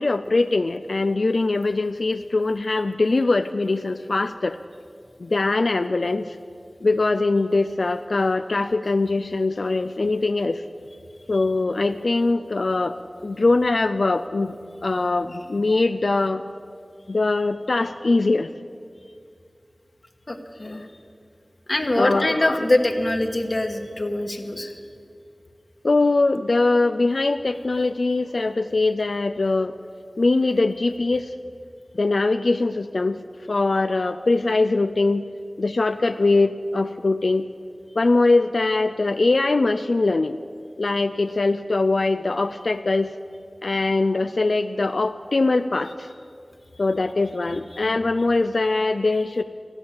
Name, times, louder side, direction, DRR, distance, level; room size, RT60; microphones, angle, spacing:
voice 1, 0.0-4.6 5.2-6.4 6.8-10.6 11.3-13.0 13.2-14.5 14.8-16.4 17.1-18.5 22.0-22.6 25.8-29.8 30.2-31.3 31.9-33.2 33.5-35.3 35.6-37.5 38.0-40.4 40.8-43.1 43.6-46.1 46.8-49.4, left 3 dB, 80° left, 9 dB, 0.3 m, -22 dB
voice 2, 20.3-20.9 21.7-24.8 47.7-47.9, left 1 dB, 50° left, 3 dB, 1.2 m, -23 dB
14.5 x 11.5 x 7.2 m, 2.3 s
wide cardioid pair, 50°, 0 cm